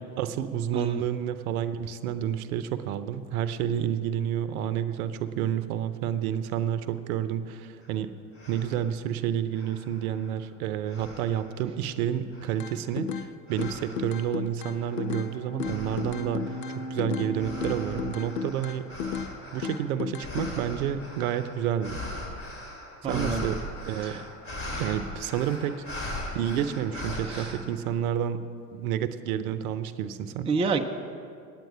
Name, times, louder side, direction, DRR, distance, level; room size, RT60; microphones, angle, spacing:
voice 1, 0.2-8.1 8.5-16.6 16.9-18.8 19.5-22.0 23.0-24.2 24.8-28.4 28.7-30.5, right 10 dB, 65° right, 13 dB, 0.7 m, -30 dB
sound 1, 7.8-7.9 8.3-8.9 9.5-10.5 10.9-11.7 12.3-12.8 13.5-14.2 14.8-27.5, left 1 dB, 30° left, 2.7 m, -40 dB
sound 2, 12.6-13.3 13.6-15.3 15.6-17.3 17.6-19.3 19.6-20.5, left 7 dB, 85° left, 0.6 m, -33 dB
Bowed string instrument, 14.5-20.0, right 1 dB, 10° left, 1.7 m, -40 dB
voice 2, 23.0-23.5 24.0-24.1 27.3-27.5 30.5-30.9, right 4 dB, 15° right, 5 dB, 0.4 m, -28 dB
9.0 x 9.0 x 7.2 m, 2.3 s
hypercardioid pair, 80°, 47 cm